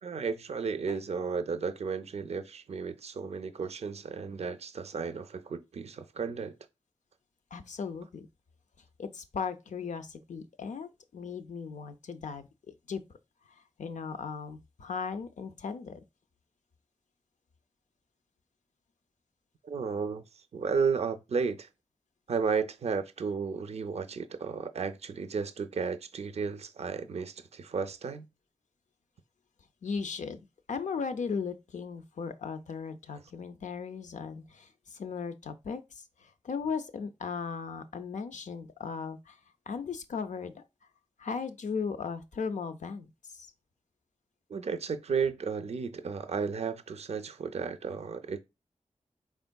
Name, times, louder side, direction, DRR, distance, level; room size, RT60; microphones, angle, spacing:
voice 1, 0.0-6.6 19.6-20.2 20.5-21.7 22.3-28.3 44.5-48.4, right 5 dB, 60° right, 0.4 m, -33 dB
voice 2, 7.5-8.3 9.0-13.0 13.8-16.0 29.8-30.4 30.7-35.8 36.2-39.4 39.7-40.6 41.2-43.5, left 5 dB, 80° left, 0.5 m, -37 dB
4.4 x 3.5 x 2.2 m
cardioid pair, 55°, 12 cm